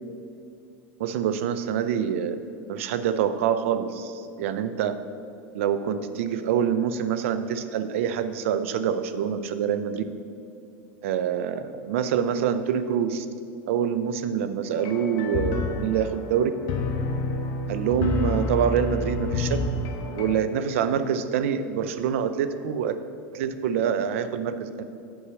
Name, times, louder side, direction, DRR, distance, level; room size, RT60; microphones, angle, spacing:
voice 1, 1.0-2.4 2.7-4.9 5.5-10.0 11.0-13.3 13.7-16.5 17.7-19.6 20.1-23.0 23.3-24.8, right 8 dB, 80° right, 11 dB, 0.6 m, -26 dB
sound 1, 14.8-20.4, left 3 dB, 55° left, 1.0 m, -29 dB
8.8 x 4.7 x 6.9 m, 2.6 s
supercardioid pair, 110°, 7 cm